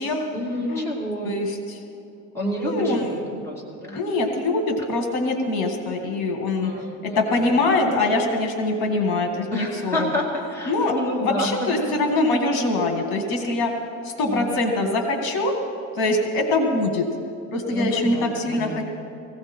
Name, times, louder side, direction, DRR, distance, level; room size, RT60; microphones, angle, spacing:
voice 1, 0.3-1.3 2.3-3.1 3.4-4.0 6.6-7.5 9.5-11.5 14.2-14.5 17.7-18.8, equal, 5° left, -5 dB, 2.6 m, -29 dB
voice 2, 1.2-1.8 2.6-3.4 3.9-6.7 7.0-10.2 10.7-10.9 11.2-13.7 14.0-15.6 16.0-17.1 17.5-18.8, left 2 dB, 60° left, 3 dB, 2.0 m, -23 dB
20.0 x 16.0 x 4.4 m, 2.8 s
cardioid pair, 155°, 41 cm